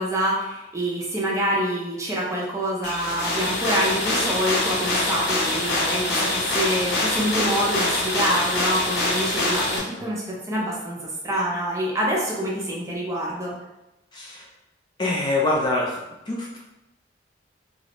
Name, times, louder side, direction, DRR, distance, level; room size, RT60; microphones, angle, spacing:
voice 1, 0.0-11.0 11.2-13.5, right 1 dB, 15° right, -4 dB, 0.6 m, -26 dB
sound 1, 2.8-9.8, left 2 dB, 60° left, 0.7 m, -24 dB
voice 2, 14.1-14.5 15.0-16.0 16.3-16.6, left 2 dB, 25° left, -4 dB, 0.4 m, -24 dB
2.4 x 2.0 x 2.9 m, 0.94 s
head